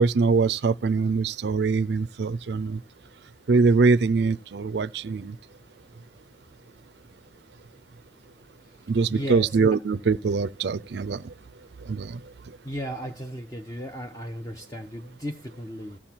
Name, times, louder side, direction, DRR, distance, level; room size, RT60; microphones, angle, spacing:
voice 1, 0.0-2.8 3.5-5.3 8.9-11.2 11.9-12.2, right 4 dB, 65° right, 0.4 m, -23 dB
voice 2, 9.1-9.5 12.6-16.0, equal, 20° left, 0.9 m, -35 dB
14.5 x 6.0 x 4.5 m
head